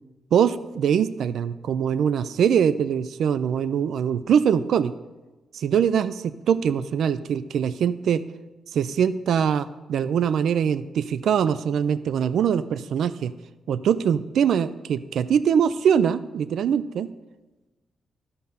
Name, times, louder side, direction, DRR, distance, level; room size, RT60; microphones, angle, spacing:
voice 1, 0.3-4.9 5.5-8.2 8.7-13.3 13.7-17.1, right 8 dB, 80° right, 15 dB, 0.3 m, -23 dB
12.0 x 5.3 x 6.9 m, 1.1 s
cardioid pair, 75°, 0 cm